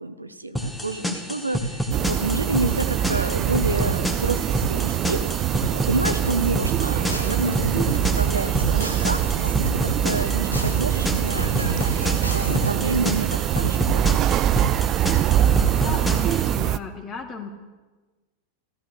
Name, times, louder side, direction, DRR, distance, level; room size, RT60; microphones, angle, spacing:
voice 1, 0.0-5.2 5.6-14.2, right 2 dB, 80° right, 11 dB, 0.9 m, -29 dB
sound 1, 0.6-16.6, equal, 5° left, 1.9 m, -29 dB
sound 2, 1.9-16.8, right 11 dB, 35° right, 0.5 m, -23 dB
sound 3, 6.2-13.0, equal, 90° left, 1.3 m, -34 dB
voice 2, 15.7-17.5, left 5 dB, 25° left, 6 dB, 2.1 m, -35 dB
14.5 x 14.5 x 6.7 m, 1.2 s
figure-of-eight pair, 90°, 0 cm